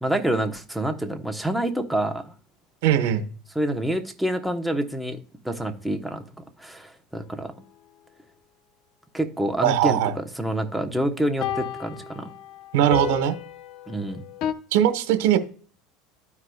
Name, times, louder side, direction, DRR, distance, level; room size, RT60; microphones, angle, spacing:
voice 1, 0.0-2.3 3.5-5.2 5.4-6.2 6.6-7.5 9.1-12.3 13.9-14.2, right 1 dB, ahead, 1.1 m, -27 dB
voice 2, 2.8-3.3 9.6-10.2 12.7-13.3 14.7-15.4, right 10 dB, 80° right, 1.2 m, -20 dB
sound 1, 7.2-7.3 11.4-14.5, left 10 dB, 55° left, 0.8 m, -32 dB
14.0 x 4.8 x 2.3 m
supercardioid pair, 115°, 0 cm